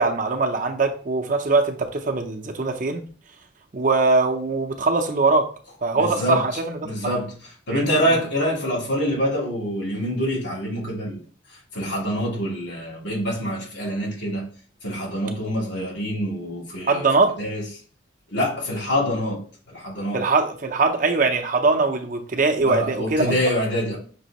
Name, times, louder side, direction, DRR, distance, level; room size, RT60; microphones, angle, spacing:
voice 1, 0.0-3.1 3.7-5.5 5.8-7.1 7.7-7.8 16.9-17.3 20.1-23.3, right 3 dB, 45° right, 0.6 m, -22 dB
voice 2, 5.9-6.6 6.8-11.2 11.5-14.5 14.8-17.0 17.4-17.6 18.3-20.2 22.6-24.0, equal, 80° left, 2.5 m, -26 dB
6.1 x 2.9 x 2.9 m
head